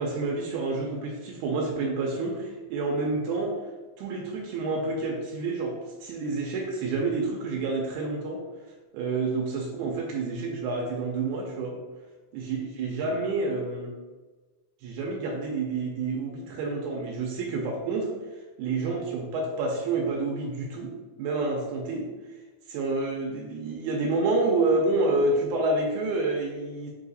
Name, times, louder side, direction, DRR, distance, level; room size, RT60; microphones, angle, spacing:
voice 1, 0.0-3.6 4.0-8.4 8.9-11.8 12.3-13.9 14.8-18.1 18.6-22.1 22.7-26.9, right 3 dB, 85° right, 0 dB, 2.0 m, -28 dB
4.7 x 2.8 x 3.9 m, 1.3 s
omnidirectional pair, 3.4 m